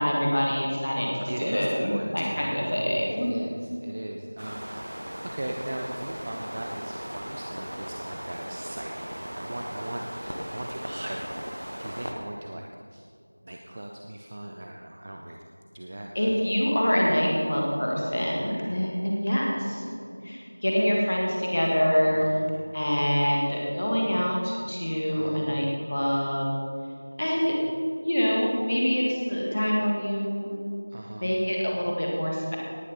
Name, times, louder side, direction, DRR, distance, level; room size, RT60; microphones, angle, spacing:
voice 1, 0.0-3.4 16.1-20.0 20.2-22.2 22.7-26.5 27.2-27.5 28.0-30.5 31.2-32.6, equal, 20° left, -2 dB, 1.7 m, -25 dB
voice 2, 1.3-13.0 13.4-15.4 15.7-16.3 18.2-18.5 22.1-22.5 25.1-25.6 30.9-31.4, right 1 dB, 15° right, 1 dB, 0.3 m, -38 dB
sound 1, 4.4-12.1, equal, 30° right, 1.0 m, -37 dB
18.0 x 10.5 x 4.0 m, 2.3 s
figure-of-eight pair, 180°, 0 cm